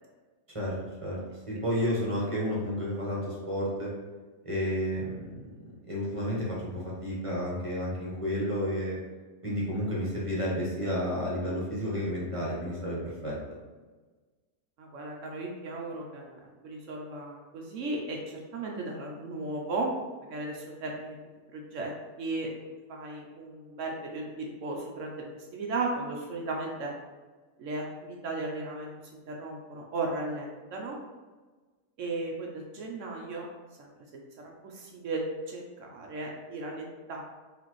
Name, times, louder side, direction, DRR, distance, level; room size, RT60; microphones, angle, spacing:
voice 1, 1.5-3.9 4.4-9.0 9.4-13.3, equal, 25° right, -6 dB, 0.9 m, -31 dB
voice 2, 14.8-19.9 20.3-21.2 21.5-21.9 22.2-22.5 22.9-26.9 27.6-28.9 29.3-31.0 32.0-33.5 33.8-33.9 34.4-37.2, right 2 dB, 65° right, 0 dB, 0.8 m, -36 dB
4.2 x 3.3 x 3.1 m, 1.3 s
omnidirectional pair, 1.8 m